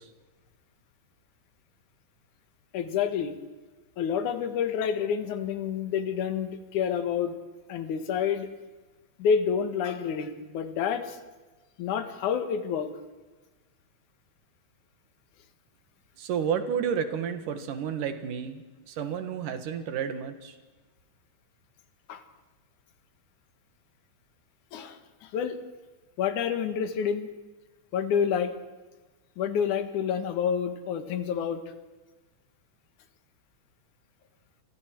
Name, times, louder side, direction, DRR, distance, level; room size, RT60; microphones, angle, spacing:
voice 1, 2.7-3.4 4.0-7.4 7.7-8.5 9.2-11.2 11.8-12.9 22.1-22.2 24.7-25.6 26.2-27.3 27.9-28.5 29.4-31.6, left 7 dB, 70° left, 9 dB, 2.9 m, -28 dB
voice 2, 16.2-20.5, right 7 dB, 85° right, 9 dB, 3.2 m, -31 dB
30.0 x 23.5 x 4.6 m, 1.2 s
omnidirectional pair, 3.6 m